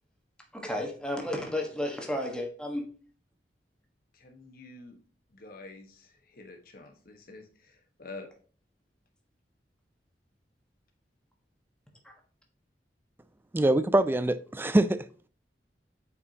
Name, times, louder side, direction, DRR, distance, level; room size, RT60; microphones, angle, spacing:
voice 1, 0.5-2.9, left 1 dB, 5° left, 1.3 m, -32 dB
voice 2, 4.1-5.0 5.3-8.3, left 3 dB, 55° left, 1.3 m, -48 dB
voice 3, 13.5-15.3, right 1 dB, 10° right, 0.3 m, -24 dB
8.5 x 4.7 x 2.8 m
head